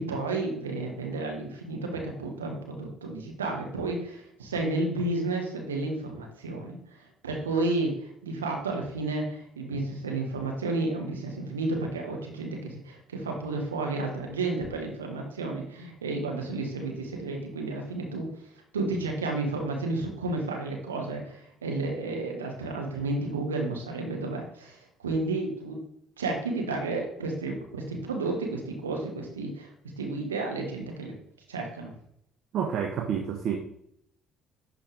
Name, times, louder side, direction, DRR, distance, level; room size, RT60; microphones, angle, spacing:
voice 1, 0.0-6.8 7.2-18.3 18.7-25.8 26.2-29.7 30.0-31.1 31.5-31.9, right 2 dB, 90° right, 1 dB, 1.2 m, -32 dB
voice 2, 32.5-33.6, right 8 dB, 60° right, 3 dB, 0.9 m, -29 dB
11.0 x 4.2 x 3.4 m, 0.71 s
hypercardioid pair, 55°, 0 cm